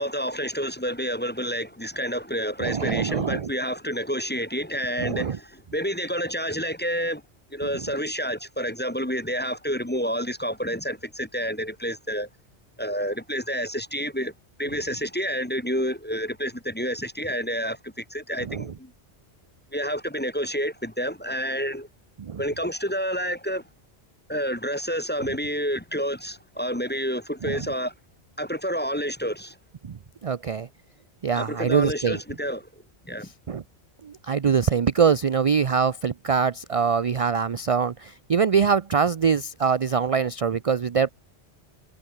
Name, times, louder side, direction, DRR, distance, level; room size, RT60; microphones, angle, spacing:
voice 1, 0.0-7.2 7.5-12.3 12.8-14.3 14.6-18.9 19.7-21.9 22.4-23.6 24.3-27.9 28.4-29.6 31.3-32.7 33.0-33.3, equal, 10° left, 1.0 m, -29 dB
voice 2, 2.6-3.5 5.0-5.4 18.4-18.7 22.2-22.4 27.4-27.7 29.8-30.7 31.2-32.2 33.5-33.6 34.0-41.1, right 6 dB, 40° right, 0.5 m, -23 dB
omnidirectional pair, 1.1 m